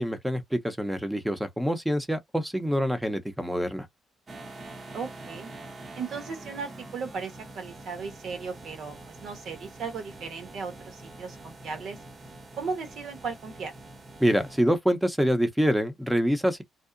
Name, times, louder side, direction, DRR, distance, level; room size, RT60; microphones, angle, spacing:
voice 1, 0.0-3.9 14.2-16.6, equal, 5° right, 0.7 m, -26 dB
sound 1, 4.3-14.6, right 2 dB, 35° right, 0.7 m, -45 dB
voice 2, 4.9-5.5 6.0-9.0 9.2-12.0 12.6-13.7, right 5 dB, 70° right, 1.1 m, -36 dB
2.7 x 2.0 x 2.5 m
cardioid pair, 90°, 0 cm